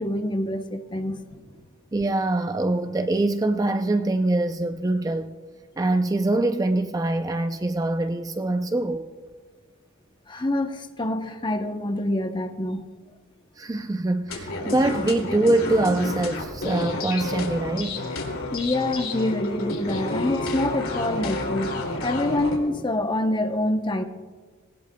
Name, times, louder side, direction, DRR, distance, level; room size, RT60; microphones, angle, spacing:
voice 1, 0.0-1.4 10.3-12.8 18.5-24.0, left 1 dB, 20° left, 0.7 m, -26 dB
voice 2, 1.9-5.3 5.8-9.1 13.6-18.0, right 2 dB, 15° right, 0.4 m, -24 dB
sound 1, 14.3-22.6, left 2 dB, 85° left, 2.4 m, -30 dB
19.5 x 18.0 x 2.2 m
head